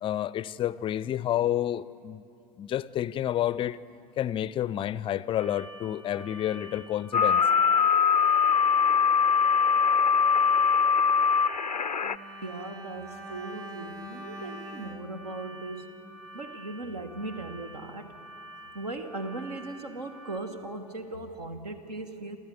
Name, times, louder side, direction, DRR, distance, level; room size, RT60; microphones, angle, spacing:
voice 1, 0.0-2.3 2.6-3.8 4.2-7.4, left 11 dB, 25° left, 0.4 m, -29 dB
sound 1, 5.4-20.4, right 1 dB, 45° right, 3.5 m, -48 dB
sound 2, 7.1-12.2, left 6 dB, 85° left, 0.4 m, -22 dB
Bowed string instrument, 12.0-16.4 16.7-16.9, equal, 15° right, 1.3 m, -45 dB
voice 2, 12.4-16.0 16.3-18.2 18.7-22.4, right 2 dB, 70° right, 1.3 m, -38 dB
28.5 x 14.0 x 8.0 m
figure-of-eight pair, 75°, 21 cm